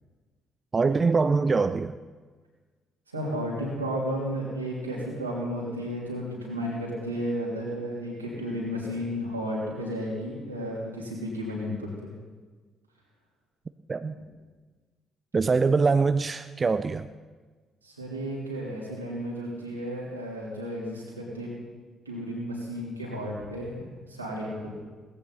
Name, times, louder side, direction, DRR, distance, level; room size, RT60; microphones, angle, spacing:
voice 1, 0.7-2.0 13.9-14.2 15.3-17.1, right 4 dB, 30° right, 11 dB, 0.5 m, -23 dB
voice 2, 3.1-12.1 17.8-21.5 22.0-24.7, equal, 85° right, -5 dB, 3.1 m, -33 dB
17.5 x 15.5 x 4.1 m, 1.4 s
figure-of-eight pair, 45°, 0 cm